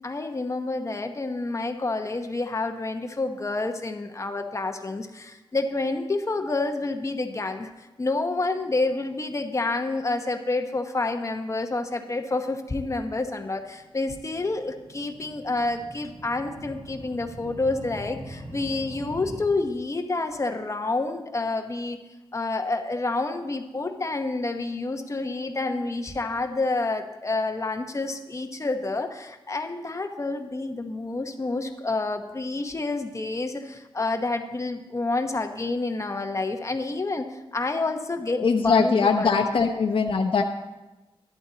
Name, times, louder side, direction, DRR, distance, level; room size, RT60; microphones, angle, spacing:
voice 1, 0.0-22.0 22.3-39.4, left 3 dB, 30° left, 6 dB, 1.0 m, -28 dB
sound 1, 13.6-19.4, right 1 dB, 70° right, 4.1 m, -43 dB
voice 2, 38.3-40.4, left 5 dB, 65° left, 2 dB, 0.8 m, -22 dB
12.5 x 12.0 x 4.0 m, 1.1 s
wide cardioid pair, 120°, 10 cm